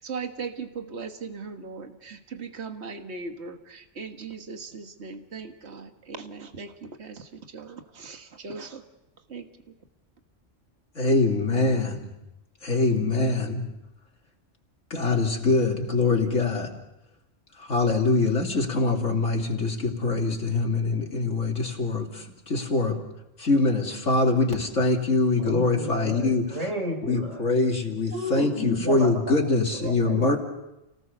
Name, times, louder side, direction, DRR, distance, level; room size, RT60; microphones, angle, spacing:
voice 1, 0.0-8.8 9.3-9.5 25.4-25.5 29.8-29.9, right 5 dB, 60° right, 5 dB, 1.9 m, -38 dB
voice 2, 10.9-12.1 12.6-13.7 14.9-16.8 17.6-23.0 23.4-26.5 27.0-30.4, left 3 dB, 85° left, 1 dB, 3.2 m, -24 dB
voice 3, 25.4-27.5 28.1-29.1 29.8-30.4, equal, 85° right, 3 dB, 5.1 m, -32 dB
30.0 x 18.5 x 6.8 m, 0.94 s
omnidirectional pair, 1.3 m